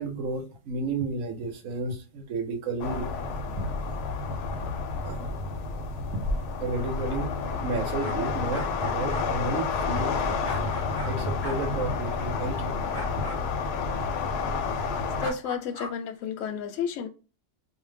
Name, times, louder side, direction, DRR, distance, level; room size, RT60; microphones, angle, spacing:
voice 1, 0.0-3.1 5.0-5.3 6.6-7.4 7.6-10.6 11.1-12.8, right 3 dB, 65° right, 1.0 m, -32 dB
sound 1, 2.8-15.3, left 4 dB, 90° left, 1.1 m, -30 dB
sound 2, 8.0-11.1 11.4-11.6 12.9-13.4 15.2-15.9, equal, 25° left, 0.6 m, -40 dB
voice 2, 15.2-17.1, left 6 dB, 70° left, 0.8 m, -31 dB
2.6 x 2.1 x 3.2 m
omnidirectional pair, 1.6 m